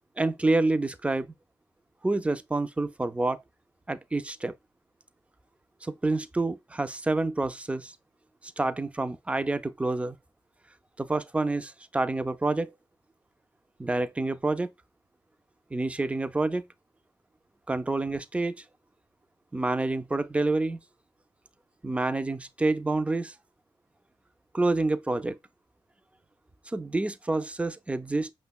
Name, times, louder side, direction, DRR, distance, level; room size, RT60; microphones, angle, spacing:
voice 1, 0.2-1.3 2.0-3.4 3.9-4.5 5.8-7.9 8.4-10.2 11.0-12.7 13.8-14.7 15.7-16.6 17.7-18.6 19.5-20.8 21.8-23.3 24.5-25.4 26.7-28.3, right 2 dB, 15° right, 0.3 m, -28 dB
5.2 x 2.1 x 2.2 m
cardioid pair, 65°, 9 cm